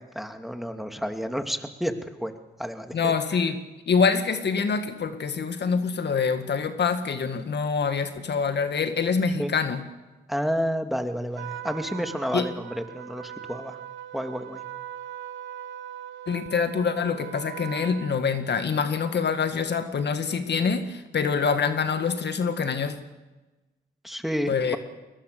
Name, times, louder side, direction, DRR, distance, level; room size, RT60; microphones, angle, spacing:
voice 1, 0.0-2.3 2.6-3.1 9.4-9.5 10.3-13.8 14.1-14.6 24.0-24.8, equal, ahead, 6 dB, 2.6 m, -30 dB
voice 2, 2.9-3.6 3.9-9.8 12.3-12.5 16.3-22.9 24.5-24.8, left 5 dB, 65° left, 8 dB, 1.9 m, -25 dB
Trumpet, 11.4-18.3, right 10 dB, 80° right, 1.3 m, -40 dB
22.0 x 20.0 x 6.9 m, 1.1 s
supercardioid pair, 45°, 19 cm